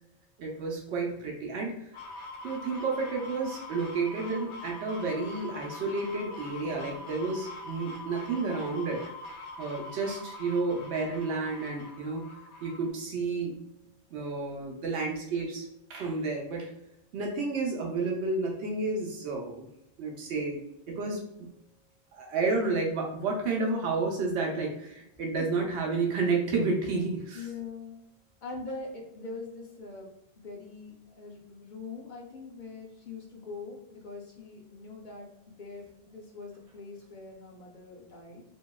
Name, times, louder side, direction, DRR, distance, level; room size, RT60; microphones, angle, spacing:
voice 1, 0.4-1.8 2.4-9.0 9.6-12.3 12.6-13.6 14.1-15.6 15.9-16.7 17.1-19.7 20.0-21.5 22.1-27.5, right 3 dB, 85° right, 0 dB, 0.9 m, -31 dB
sound 1, 1.9-12.9, left 2 dB, 90° left, 0.9 m, -44 dB
voice 2, 6.6-7.0 25.4-25.7 27.3-28.0 28.4-38.4, left 3 dB, 55° left, -1 dB, 0.7 m, -43 dB
2.8 x 2.7 x 2.2 m, 0.78 s
omnidirectional pair, 1.1 m